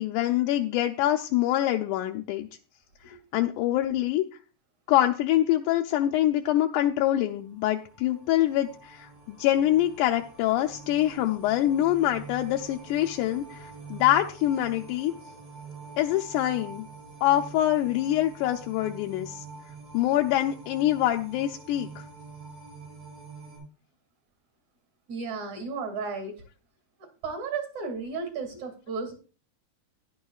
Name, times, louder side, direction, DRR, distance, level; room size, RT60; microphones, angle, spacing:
voice 1, 0.0-2.5 3.1-4.2 4.9-15.1 16.0-16.9 17.2-19.4 19.9-21.9, left 13 dB, 80° left, 2 dB, 1.9 m, -25 dB
sound 1, 7.4-23.6, right 5 dB, 80° right, 8.8 m, -46 dB
voice 2, 25.1-26.4 27.2-29.1, right 4 dB, 60° right, 5 dB, 3.7 m, -34 dB
14.0 x 11.0 x 2.4 m, 0.35 s
omnidirectional pair, 3.9 m